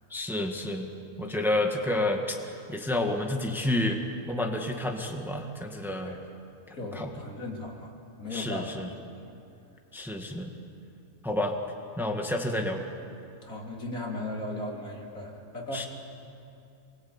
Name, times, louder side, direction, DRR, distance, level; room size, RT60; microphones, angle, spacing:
voice 1, 0.1-0.9 1.2-4.0 4.3-6.2 6.7-7.2 8.3-8.9 9.9-10.5 11.2-11.5 12.0-12.9 15.7-15.9, left 1 dB, ahead, 2 dB, 1.8 m, -30 dB
voice 2, 6.7-7.9 8.2-8.8 13.4-15.9, left 1 dB, 70° left, -1 dB, 3.8 m, -36 dB
27.5 x 22.5 x 8.8 m, 2.6 s
omnidirectional pair, 1.5 m